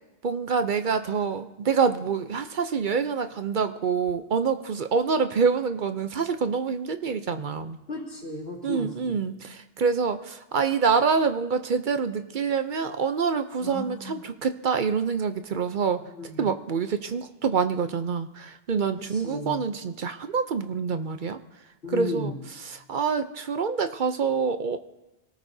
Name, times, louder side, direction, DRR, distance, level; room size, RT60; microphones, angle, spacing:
voice 1, 0.2-7.8 8.6-16.0 16.4-21.4 21.9-24.8, right 5 dB, 55° right, 9 dB, 0.8 m, -26 dB
voice 2, 7.9-9.2 13.6-14.2 16.0-16.4 19.1-19.6 21.8-22.4, left 1 dB, 80° left, -3 dB, 3.4 m, -35 dB
25.0 x 18.0 x 2.7 m, 1.0 s
omnidirectional pair, 1.0 m